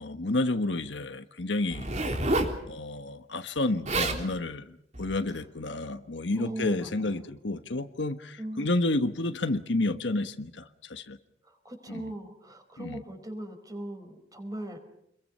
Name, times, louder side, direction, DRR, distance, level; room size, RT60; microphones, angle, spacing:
voice 1, 0.0-1.9 2.7-4.7 5.0-11.2 11.9-12.1 12.8-13.0, left 2 dB, 75° left, 9 dB, 1.4 m, -30 dB
Zipper (clothing), 1.7-2.6 3.6-3.7 3.9-4.2 4.9-5.2, right 2 dB, 40° right, 3.6 m, -28 dB
voice 2, 6.4-7.3 8.4-8.7 11.6-14.8, right 1 dB, 20° right, 6 dB, 5.0 m, -39 dB
29.5 x 22.5 x 5.6 m, 0.75 s
head